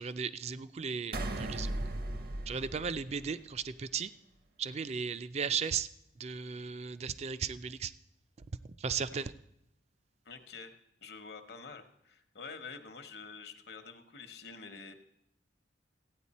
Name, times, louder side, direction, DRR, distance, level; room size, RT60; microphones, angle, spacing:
voice 1, 0.0-1.8 2.5-4.1 4.6-5.9 6.2-7.9 8.8-9.3, right 6 dB, 35° right, 14 dB, 0.4 m, -36 dB
sound 1, 1.1-3.7, right 1 dB, 55° right, 0.8 m, -37 dB
voice 2, 10.2-10.7 11.0-14.9, left 5 dB, 65° left, 8 dB, 0.9 m, -47 dB
14.5 x 9.1 x 4.2 m, 0.78 s
head